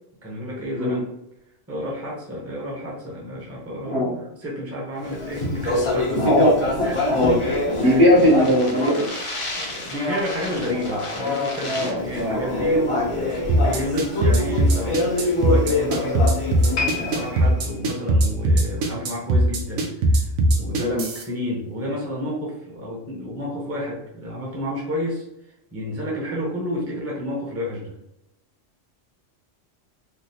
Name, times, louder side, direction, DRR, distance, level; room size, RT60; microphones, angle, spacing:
voice 1, 0.2-1.1 1.7-6.3 6.8-6.9 7.5-8.1 8.8-9.0 9.6-25.2 25.7-27.9, left 1 dB, 15° right, -4 dB, 0.8 m, -30 dB
Speech, 5.1-17.5, left 2 dB, 35° left, 0.6 m, -26 dB
voice 2, 6.2-7.4 7.8-9.2 11.6-12.7 20.8-21.0, equal, 65° right, -5 dB, 1.4 m, -20 dB
sound 1, 13.5-21.2, right 1 dB, 90° right, 1.0 m, -19 dB
sound 2, 16.7-20.0 20.3-20.6 21.3-21.4, left 5 dB, 70° left, 1.1 m, -33 dB
3.6 x 2.3 x 2.8 m, 0.83 s
omnidirectional pair, 1.2 m